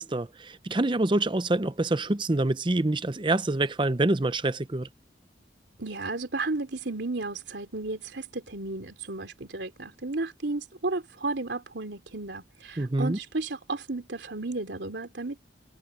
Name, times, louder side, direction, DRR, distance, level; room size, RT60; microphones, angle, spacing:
voice 1, 0.0-4.9 12.8-13.2, right 2 dB, 25° right, 0.7 m, -26 dB
voice 2, 5.8-15.4, right 2 dB, 85° right, 3.0 m, -33 dB
head